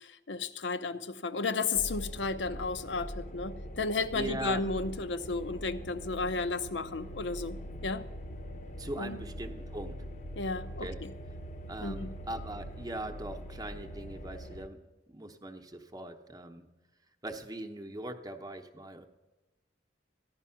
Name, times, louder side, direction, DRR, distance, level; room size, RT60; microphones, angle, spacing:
voice 1, 0.0-8.1 9.0-9.2 10.4-11.1 11.8-12.1, left 3 dB, 85° left, 11 dB, 0.7 m, -33 dB
sound 1, 1.8-14.7, equal, 45° left, 0.7 m, -43 dB
voice 2, 4.1-4.7 8.8-9.9 10.8-11.0 11.7-16.7 17.2-19.1, right 1 dB, 20° right, 6 dB, 0.8 m, -40 dB
14.5 x 10.5 x 5.7 m, 1.1 s
head